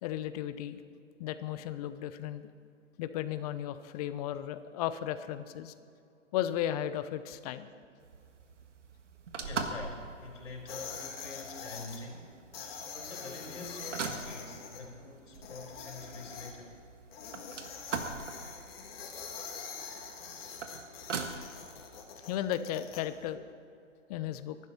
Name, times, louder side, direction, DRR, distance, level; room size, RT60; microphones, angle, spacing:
voice 1, 0.0-0.8 1.2-2.5 3.0-5.7 6.3-7.7 22.2-23.5 24.1-24.6, left 11 dB, 30° left, 12 dB, 0.8 m, -35 dB
sound 1, 8.0-23.3, right 4 dB, 70° right, 1.8 m, -43 dB
voice 2, 9.3-12.4 12.8-16.8, left 3 dB, 75° left, 0 dB, 4.0 m, -45 dB
sound 2, 10.7-12.0 12.5-14.8 15.3-16.5 17.1-23.0, left 6 dB, 50° left, 2.8 m, -44 dB
24.0 x 12.0 x 4.3 m, 2.4 s
hypercardioid pair, 130°, 37 cm